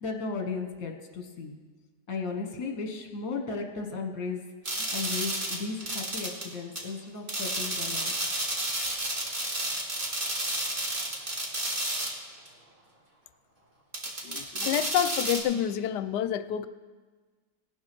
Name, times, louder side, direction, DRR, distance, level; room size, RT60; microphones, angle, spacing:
voice 1, 0.0-1.6 2.1-4.4 4.8-8.1, left 4 dB, 60° left, 3 dB, 1.7 m, -35 dB
sound 1, 4.7-6.5 6.8-6.9 7.3-12.2 12.5-12.6 13.9-15.4, right 1 dB, 35° right, 1.8 m, -31 dB
voice 2, 14.2-16.7, left 10 dB, 85° left, 12 dB, 1.2 m, -28 dB
18.0 x 7.2 x 6.1 m, 1.4 s
omnidirectional pair, 1.8 m